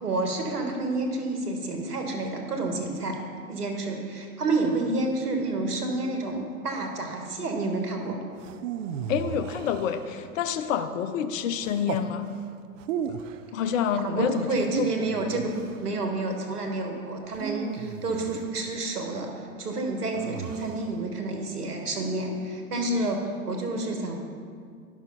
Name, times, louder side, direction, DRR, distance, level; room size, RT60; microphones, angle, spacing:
voice 1, 0.0-3.2 3.5-8.2 14.0-15.5 15.8-24.1, right 2 dB, 85° right, 3 dB, 1.5 m, -29 dB
sound 1, 8.4-10.4 11.6-12.1 12.8-13.5 14.5-15.9 17.3-18.6 20.1-20.9, right 9 dB, 55° right, 0.6 m, -35 dB
voice 2, 9.1-12.3 13.5-14.5 14.8-15.1, left 8 dB, 60° left, 10 dB, 0.7 m, -28 dB
11.5 x 6.2 x 4.0 m, 2.2 s
hypercardioid pair, 100°, 45 cm